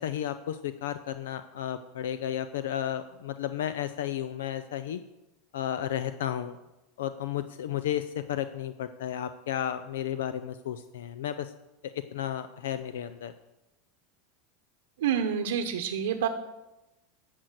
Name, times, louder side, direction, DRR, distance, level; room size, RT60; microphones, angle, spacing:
voice 1, 0.0-5.0 5.5-6.6 7.0-11.5 11.8-13.3, left 10 dB, 90° left, 11 dB, 0.5 m, -33 dB
voice 2, 15.0-16.3, right 8 dB, 90° right, 6 dB, 1.0 m, -28 dB
10.5 x 6.2 x 8.1 m, 0.99 s
supercardioid pair, 125°, 0 cm